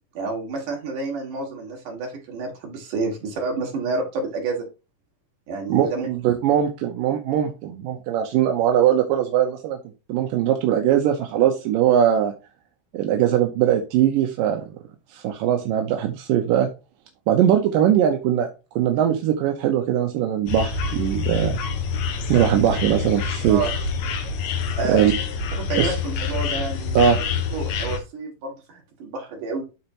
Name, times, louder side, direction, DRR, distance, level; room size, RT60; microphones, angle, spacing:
voice 1, 0.2-4.6 5.5-6.1 23.5-23.7 24.8-25.0 25.6-27.2 27.5-29.6, right 3 dB, 55° right, 0 dB, 3.6 m, -29 dB
voice 2, 5.7-9.8 10.1-12.3 12.9-14.6 15.1-16.7 17.3-18.5 18.8-21.6 22.3-23.6 24.9-25.1 25.8-26.0 27.0-27.2, right 10 dB, 75° right, 2 dB, 2.3 m, -20 dB
sound 1, 20.5-28.0, left 5 dB, 85° left, 3.1 m, -27 dB
12.0 x 4.3 x 2.9 m, 0.30 s
omnidirectional pair, 4.5 m